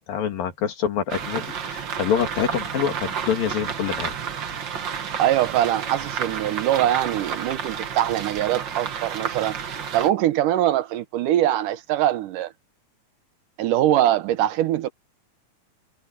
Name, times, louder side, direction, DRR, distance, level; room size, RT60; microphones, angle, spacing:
voice 1, 0.1-4.2, left 8 dB, 85° left, 4.2 m, -26 dB
sound 1, 1.1-10.1, right 7 dB, 50° right, 1.5 m, -31 dB
voice 2, 5.2-9.6 9.9-12.5 13.6-14.9, right 12 dB, 75° right, 2.4 m, -22 dB
omnidirectional pair, 3.9 m